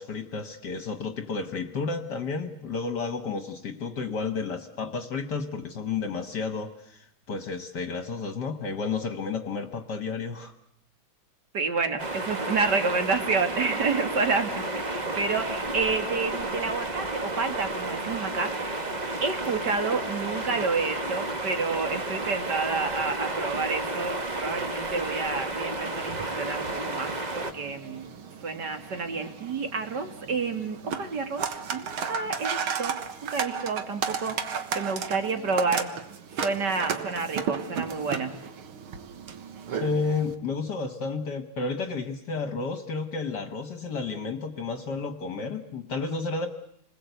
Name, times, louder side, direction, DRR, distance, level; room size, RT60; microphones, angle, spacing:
voice 1, 0.0-10.5 39.7-46.5, left 4 dB, 55° left, 8 dB, 1.6 m, -31 dB
voice 2, 11.5-18.9 19.2-28.1 28.4-32.9 33.3-34.4 34.7-35.9 36.3-38.3, right 4 dB, 55° right, 6 dB, 2.5 m, -29 dB
sound 1, 12.0-27.5, right 2 dB, 25° right, 1.3 m, -32 dB
sound 2, 25.9-40.3, right 6 dB, 85° right, 2.3 m, -34 dB
29.5 x 20.5 x 8.1 m, 0.75 s
omnidirectional pair, 2.3 m